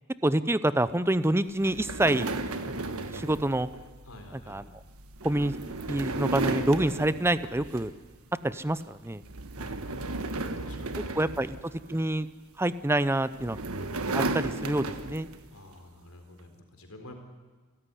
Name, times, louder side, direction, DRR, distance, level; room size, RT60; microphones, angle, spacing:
voice 1, 0.2-2.3 2.7-2.8 3.1-3.7 4.3-4.7 5.2-5.6 5.9-7.9 8.4-9.2 10.9-11.6 11.9-12.3 12.6-13.6 14.1-15.3, right 1 dB, 10° right, 14 dB, 0.7 m, -27 dB
sound 1, 1.6-8.2 8.5-8.8 9.2-12.2 13.0-15.5, right 2 dB, 90° right, 1.5 m, -34 dB
voice 2, 4.0-4.6 9.6-11.1 11.3-11.4 15.5-17.2, left 1 dB, 80° left, 4 dB, 4.2 m, -49 dB
29.0 x 13.5 x 9.9 m, 1.3 s
head